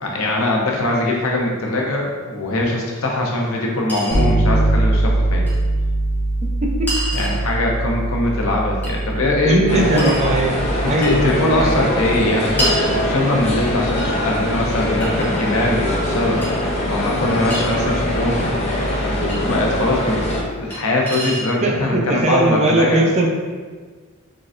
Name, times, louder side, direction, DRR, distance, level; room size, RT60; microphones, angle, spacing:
voice 1, 0.0-5.4 7.1-10.2 10.8-16.4 16.9-20.3 20.6-23.0, left 1 dB, 75° left, -1 dB, 0.7 m, -21 dB
Chink clink, 2.9-3.0 3.9-4.2 5.5-5.6 6.9-7.4 8.8-9.0 10.0-10.3 11.0-11.2 12.6-12.8 14.0-14.1 15.0-15.7 16.4-16.5 17.5-17.6 19.3-19.4 20.7-20.8 21.1-21.5, right 1 dB, 10° left, 1.1 m, -27 dB
Bass guitar, 4.1-13.8, right 1 dB, 65° right, 1.3 m, -23 dB
voice 2, 6.6-6.9 9.4-11.8 21.6-23.3, right 2 dB, 30° right, 0 dB, 0.5 m, -19 dB
sound 1, 9.7-20.4, left 1 dB, 30° left, 0.6 m, -22 dB
3.8 x 3.2 x 2.5 m, 1.5 s
head